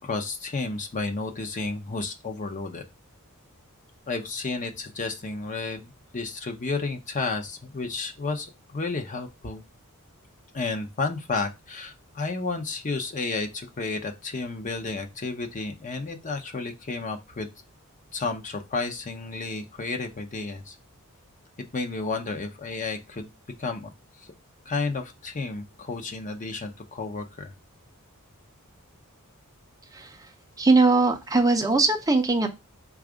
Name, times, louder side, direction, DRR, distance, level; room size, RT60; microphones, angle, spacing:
voice 1, 0.0-2.8 4.1-5.9 6.1-8.5 8.7-9.6 10.5-17.5 18.1-20.7 21.7-23.3 23.6-23.9 24.7-27.5, left 3 dB, 35° left, 5 dB, 0.7 m, -31 dB
voice 2, 30.6-32.5, right 3 dB, 15° right, 5 dB, 0.5 m, -20 dB
4.4 x 2.4 x 4.8 m, 0.23 s
head